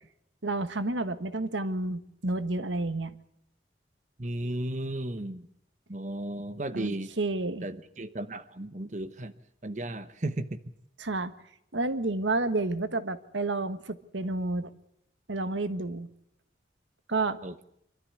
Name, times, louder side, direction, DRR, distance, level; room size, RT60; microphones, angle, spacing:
voice 1, 0.4-3.2 6.7-7.7 11.0-11.3 11.7-14.7 15.3-16.1 17.1-17.4, right 2 dB, 85° right, 11 dB, 1.4 m, -30 dB
voice 2, 4.2-5.5 5.9-7.1 7.6-9.3 9.6-10.6 17.4-17.6, right 1 dB, 40° right, 9 dB, 1.1 m, -34 dB
26.0 x 13.0 x 9.7 m, 0.75 s
head